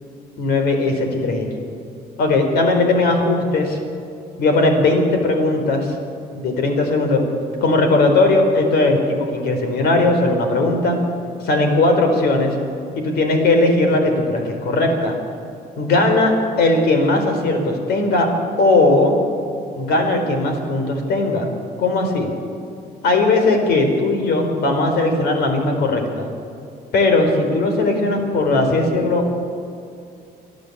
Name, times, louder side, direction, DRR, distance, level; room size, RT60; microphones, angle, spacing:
voice 1, 0.4-1.5 2.2-3.8 4.4-5.9 6.3-7.2 7.6-11.0 11.4-12.5 12.9-15.2 15.8-18.3 18.6-19.2 19.8-21.5 21.8-22.3 23.0-26.3 26.9-29.4, left 2 dB, 70° left, 5 dB, 4.2 m, -18 dB
29.0 x 10.5 x 8.5 m, 2.5 s
cardioid pair, 110°, 17 cm